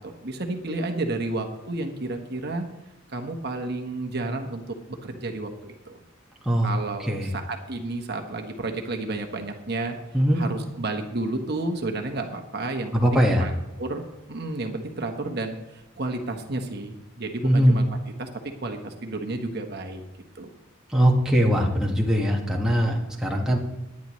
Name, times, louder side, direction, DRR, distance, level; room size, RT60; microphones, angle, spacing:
voice 1, 0.0-2.6 3.1-4.7 5.0-6.0 6.6-10.0 10.3-13.5 13.8-14.0 14.3-17.8 18.2-18.3 18.6-20.0 20.3-20.5, right 2 dB, 50° right, 4 dB, 1.2 m, -31 dB
voice 2, 12.9-13.5 17.4-17.8 20.9-23.6, equal, 5° right, -2 dB, 1.5 m, -21 dB
18.5 x 10.5 x 3.1 m, 0.96 s
head